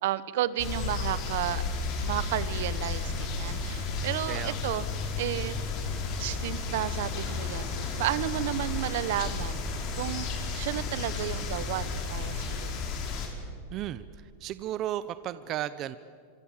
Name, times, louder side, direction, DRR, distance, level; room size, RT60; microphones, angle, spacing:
voice 1, 0.0-1.6 2.0-4.8 5.2-5.5 6.2-7.7 8.0-9.6 10.0-10.3 10.5-12.7, right 13 dB, 70° right, 16 dB, 1.2 m, -32 dB
sound 1, 0.6-13.3, left 4 dB, 45° left, 5.2 m, -33 dB
voice 2, 4.3-4.6 13.7-14.0 14.4-16.0, right 13 dB, 40° right, 14 dB, 0.7 m, -34 dB
26.5 x 24.0 x 7.5 m, 2.2 s
supercardioid pair, 130°, 0 cm